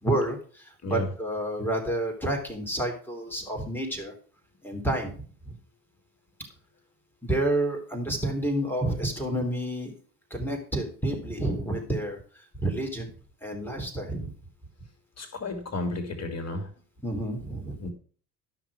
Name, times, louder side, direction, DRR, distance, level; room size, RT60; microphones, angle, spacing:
voice 1, 0.0-4.1 4.6-5.5 7.2-9.9 10.3-13.1 13.4-14.3 17.0-17.9, right 1 dB, 5° left, 3 dB, 3.4 m, -29 dB
voice 2, 15.2-16.7 17.8-17.9, left 2 dB, 30° left, 7 dB, 2.9 m, -32 dB
13.0 x 6.0 x 4.9 m, 0.42 s
figure-of-eight pair, 60°, 48 cm